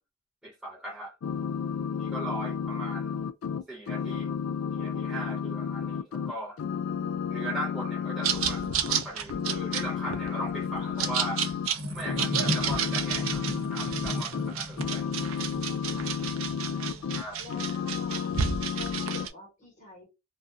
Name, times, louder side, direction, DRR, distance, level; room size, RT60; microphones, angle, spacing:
voice 1, 0.4-1.1 1.9-3.1 3.7-4.3 4.7-6.6 7.3-11.5 11.9-15.1 17.1-17.4, right 1 dB, 5° right, 0.5 m, -39 dB
sound 1, 1.2-6.3 6.6-9.0 9.3-11.7 12.0-17.2 17.5-19.3, left 7 dB, 80° left, 0.3 m, -32 dB
sound 2, 8.2-19.3, right 8 dB, 85° right, 0.4 m, -32 dB
sound 3, 8.6-18.1, left 2 dB, 55° right, 0.9 m, -39 dB
voice 2, 16.4-18.3 18.7-20.0, left 2 dB, 40° left, 1.0 m, -48 dB
2.4 x 2.2 x 2.6 m
head